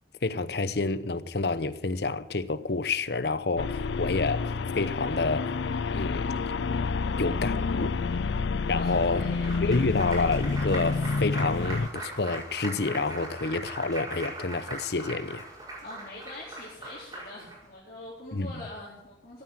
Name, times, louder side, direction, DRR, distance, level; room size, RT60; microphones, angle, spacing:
voice 1, 0.2-5.5 5.9-6.3 7.2-7.9 8.7-9.2 9.6-15.4 18.3-18.5, left 3 dB, 65° left, 0.8 m, -28 dB
sound 1, 3.6-11.9, left 4 dB, 90° left, 0.5 m, -29 dB
voice 2, 8.8-9.8 15.8-19.4, left 2 dB, 50° left, 4.2 m, -44 dB
Applause, 8.9-17.6, right 2 dB, 20° right, 5.1 m, -40 dB
14.5 x 9.5 x 7.7 m
head